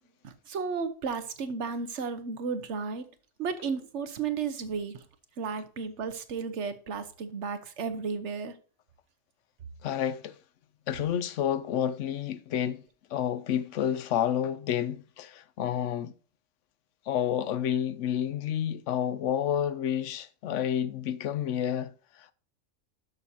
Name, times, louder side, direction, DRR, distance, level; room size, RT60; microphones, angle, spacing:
voice 1, 0.2-3.1 3.4-5.0 5.4-8.5, right 5 dB, 70° right, 1.2 m, -33 dB
voice 2, 9.8-10.4 10.9-12.8 13.1-16.1 17.1-22.3, left 9 dB, 80° left, 0.9 m, -30 dB
12.0 x 6.3 x 2.8 m
omnidirectional pair, 1.3 m